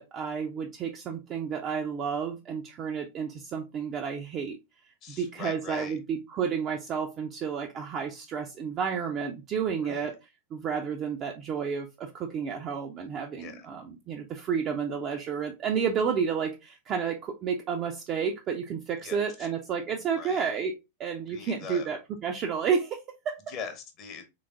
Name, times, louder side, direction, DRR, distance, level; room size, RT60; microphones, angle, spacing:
voice 1, 0.0-4.6 5.2-10.2 10.5-20.7 21.0-23.4, right 6 dB, 30° right, 0.4 m, -31 dB
voice 2, 5.0-6.0 9.8-10.1 13.4-13.7 19.0-19.2 20.1-20.5 21.3-21.9 23.5-24.2, left 6 dB, 35° left, 0.7 m, -41 dB
3.3 x 3.1 x 2.4 m
figure-of-eight pair, 90°, 0 cm